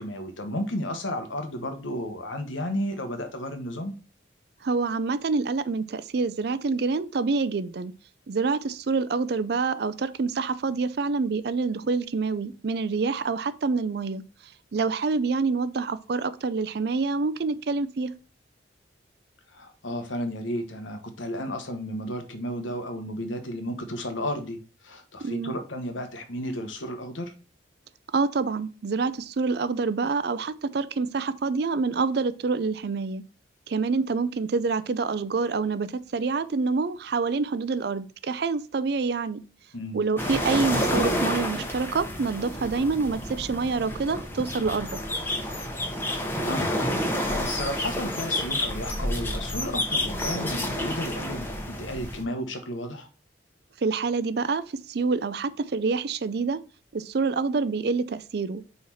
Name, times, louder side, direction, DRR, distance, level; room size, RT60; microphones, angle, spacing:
voice 1, 0.0-3.9 19.5-27.3 39.7-40.0 46.4-46.9 47.2-53.1, equal, 90° left, 1.2 m, -33 dB
voice 2, 4.6-7.9 8.3-14.2 14.7-18.1 25.2-25.6 28.1-33.2 33.7-39.4 39.9-45.0 53.8-56.6 56.9-58.7, right 4 dB, 55° right, 0.4 m, -27 dB
sound 1, 40.2-52.2, left 1 dB, 10° left, 0.9 m, -29 dB
4.8 x 4.2 x 5.6 m
head